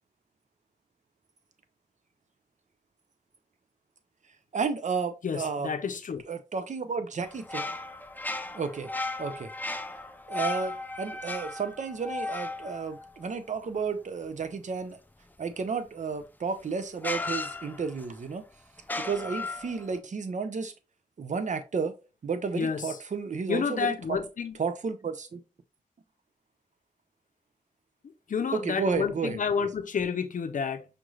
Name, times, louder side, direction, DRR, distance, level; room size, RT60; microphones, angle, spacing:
voice 1, 4.5-5.7 6.3-7.7 8.5-8.9 9.2-9.5 10.3-15.0 15.4-18.4 19.0-20.7 21.2-21.9 22.2-24.2 24.6-25.4 28.5-29.4, right 5 dB, 65° right, 0.6 m, -32 dB
voice 2, 5.2-6.2 22.5-23.0 23.5-24.6 28.3-30.8, left 6 dB, 75° left, 0.5 m, -30 dB
sound 1, 7.2-13.8 16.1-16.2 17.0-18.2 18.8-20.0, left 2 dB, 15° left, 0.4 m, -36 dB
5.1 x 3.1 x 2.4 m
wide cardioid pair, 100°, 13 cm